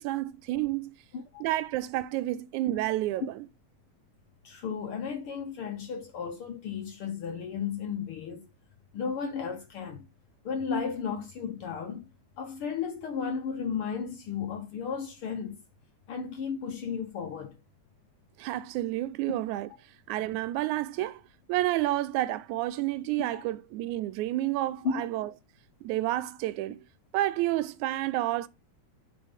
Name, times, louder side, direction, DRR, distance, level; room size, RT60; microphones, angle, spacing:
voice 1, 0.0-1.0 1.4-3.5 18.4-19.7 20.1-21.2 21.5-25.3 25.8-26.8 27.1-28.5, right 15 dB, 85° right, 2.0 m, -30 dB
voice 2, 4.4-8.5 8.9-10.1 10.4-12.1 12.4-15.6 16.1-17.6 23.3-23.4 24.8-25.0, left 6 dB, 65° left, 1.5 m, -34 dB
9.4 x 4.0 x 3.6 m
omnidirectional pair, 3.3 m